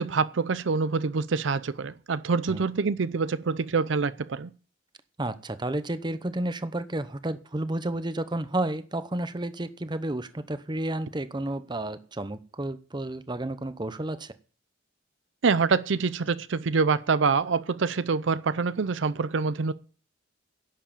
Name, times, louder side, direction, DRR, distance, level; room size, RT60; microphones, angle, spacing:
voice 1, 0.0-4.5 15.4-19.7, right 4 dB, 75° right, 0.6 m, -26 dB
voice 2, 5.2-14.3, right 1 dB, 25° right, 0.8 m, -31 dB
11.0 x 7.4 x 8.8 m
head